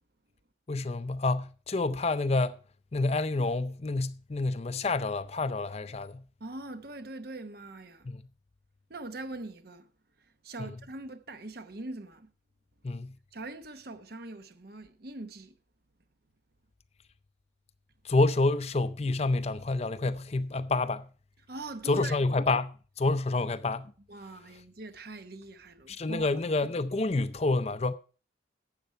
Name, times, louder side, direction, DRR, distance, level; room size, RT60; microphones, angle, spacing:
voice 1, 0.7-2.6 2.9-6.2 8.0-8.2 10.6-10.7 12.8-13.1 18.0-21.1 21.8-23.9 25.9-27.9, left 2 dB, 35° left, 0.5 m, -28 dB
voice 2, 6.4-8.1 8.9-9.9 10.4-12.3 13.3-15.6 21.5-22.3 23.3-23.4 24.1-26.3, right 2 dB, 55° right, 1.0 m, -42 dB
12.0 x 8.3 x 4.4 m
head